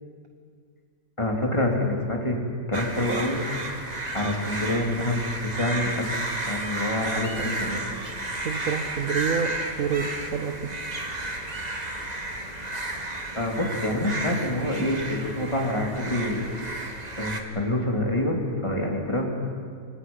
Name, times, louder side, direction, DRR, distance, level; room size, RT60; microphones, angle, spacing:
voice 1, 1.2-2.4 2.7-3.4 4.1-5.2 5.5-7.8 13.3-16.8 17.2-19.3, left 1 dB, 15° left, 0 dB, 3.2 m, -27 dB
sound 1, 2.7-17.4, right 2 dB, 25° right, 1.9 m, -32 dB
voice 2, 8.4-10.8, right 6 dB, 55° right, 6 dB, 1.4 m, -28 dB
28.5 x 25.0 x 5.6 m, 2.2 s
omnidirectional pair, 1.9 m